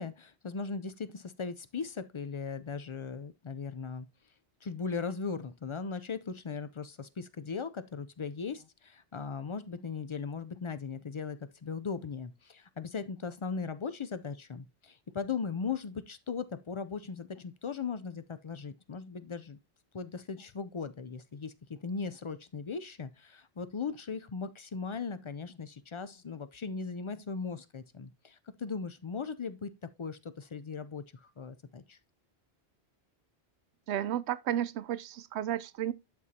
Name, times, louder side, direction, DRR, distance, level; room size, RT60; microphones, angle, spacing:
voice 1, 0.0-4.1 4.6-19.6 19.9-29.7 30.0-32.0, left 5 dB, 50° left, 0.3 m, -38 dB
voice 2, 33.9-35.9, right 11 dB, 80° right, 0.8 m, -32 dB
12.0 x 4.2 x 2.7 m
omnidirectional pair, 1.1 m